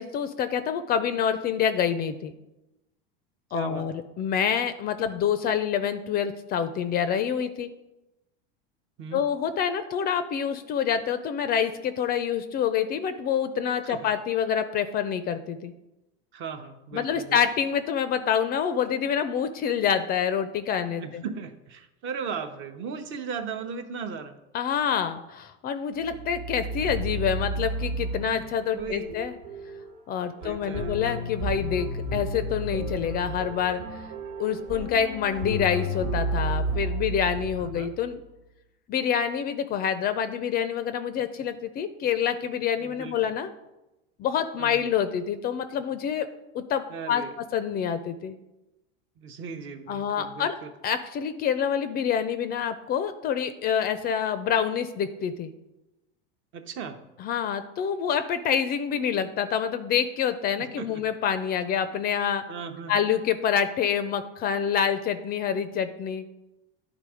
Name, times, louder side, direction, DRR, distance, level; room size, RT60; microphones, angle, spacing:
voice 1, 0.0-2.3 3.5-7.7 9.1-15.7 16.9-21.2 24.5-29.3 30.1-34.0 34.4-38.2 38.9-43.5 44.2-46.3 46.5-46.8 47.1-47.2 47.5-48.4 49.9-50.5 50.8-55.5 57.2-62.4 62.9-66.3, left 8 dB, 30° left, 11 dB, 0.4 m, -27 dB
voice 2, 3.5-3.9 9.0-9.2 13.8-14.1 16.3-17.4 20.9-24.4 28.6-29.2 30.4-31.0 37.6-37.9 42.8-43.3 44.6-44.9 46.9-47.4 49.2-50.7 56.5-57.0 60.6-61.0 62.5-63.0, right 6 dB, 40° right, 8 dB, 0.8 m, -37 dB
sound 1, 26.0-38.1, right 1 dB, 85° right, 1.5 m, -32 dB
10.5 x 3.6 x 4.8 m, 0.97 s
supercardioid pair, 130°, 29 cm